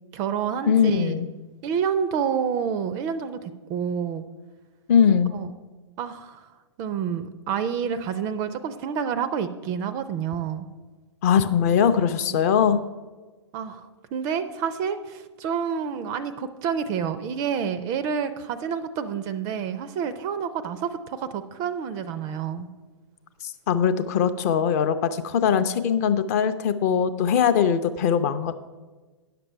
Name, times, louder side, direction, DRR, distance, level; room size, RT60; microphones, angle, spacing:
voice 1, 0.1-1.2 1.6-4.2 5.3-5.5 6.0-6.5 6.8-10.7 12.3-12.4 13.5-22.7, right 7 dB, 25° right, 12 dB, 0.4 m, -28 dB
voice 2, 0.7-1.3 4.9-5.3 11.2-12.9 23.4-28.5, left 7 dB, 35° left, 10 dB, 0.5 m, -21 dB
9.8 x 6.8 x 5.5 m, 1.3 s
figure-of-eight pair, 115°, 15 cm